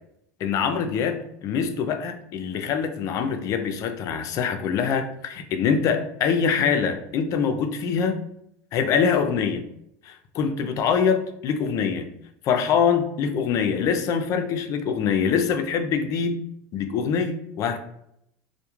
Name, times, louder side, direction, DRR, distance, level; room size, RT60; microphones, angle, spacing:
voice 1, 0.4-8.2 8.7-9.6 10.0-12.1 12.4-16.4 16.7-17.8, left 6 dB, 45° left, 7 dB, 0.4 m, -24 dB
2.3 x 2.1 x 2.9 m, 0.75 s
supercardioid pair, 115°, 8 cm